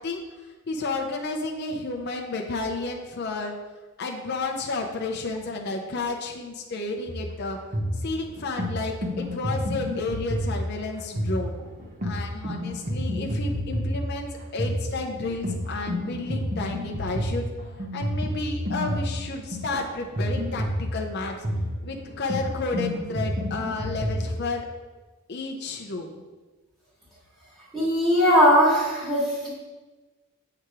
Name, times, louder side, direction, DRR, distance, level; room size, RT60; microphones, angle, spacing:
voice 1, 0.0-3.6 4.0-7.6 8.0-11.5 12.0-17.4 17.9-21.3 21.8-24.7 25.3-26.2, left 3 dB, 45° left, 1 dB, 0.5 m, -31 dB
sound 1, 7.1-24.3, equal, 35° right, 0.8 m, -30 dB
voice 2, 27.7-29.5, equal, ahead, -8 dB, 1.5 m, -19 dB
7.8 x 2.8 x 4.7 m, 1.3 s
head